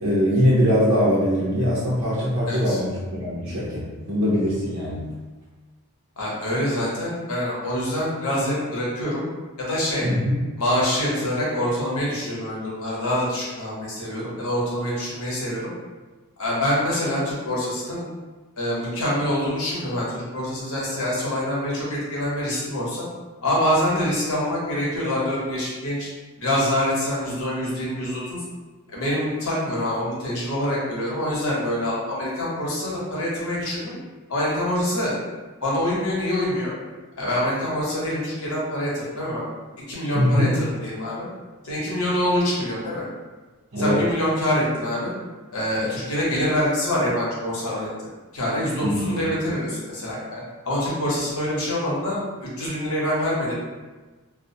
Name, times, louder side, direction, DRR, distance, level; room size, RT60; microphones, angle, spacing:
voice 1, 0.0-5.1 10.0-10.4 40.1-40.5 43.7-44.0 48.8-49.1, equal, 85° right, -9 dB, 0.6 m, -22 dB
voice 2, 2.5-2.8 6.2-9.3 9.6-10.1 10.6-15.7 16.4-18.0 18.6-23.0 23.4-26.1 26.4-28.4 28.9-33.9 34.3-35.2 35.6-36.7 37.2-39.4 39.9-41.3 41.6-43.1 43.8-45.1 45.5-52.2 52.6-53.6, left 1 dB, 90° left, -6 dB, 0.9 m, -25 dB
2.3 x 2.1 x 2.6 m, 1.3 s
head